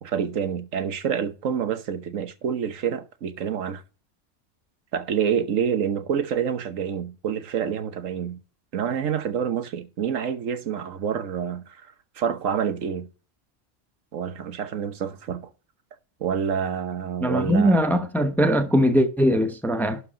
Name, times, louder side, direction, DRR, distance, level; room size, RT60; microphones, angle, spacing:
voice 1, 0.0-3.8 4.9-8.4 8.7-13.1 14.1-15.5 16.2-17.8, right 8 dB, 85° right, 1.4 m, -27 dB
voice 2, 17.2-20.0, equal, ahead, 0.7 m, -21 dB
11.5 x 4.7 x 5.0 m
omnidirectional pair, 1.3 m